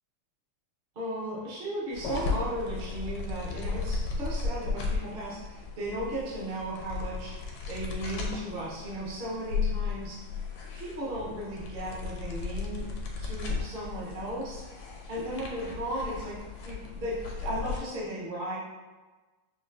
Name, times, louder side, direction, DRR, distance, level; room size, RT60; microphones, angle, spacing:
voice 1, 0.9-7.3 7.7-10.2 10.7-12.9 13.2-14.6 15.1-18.6, right 1 dB, 65° right, -7 dB, 0.5 m, -36 dB
sound 1, 1.9-17.8, left 4 dB, 80° left, 1.5 m, -35 dB
5.9 x 2.2 x 2.5 m, 1.3 s
omnidirectional pair, 2.4 m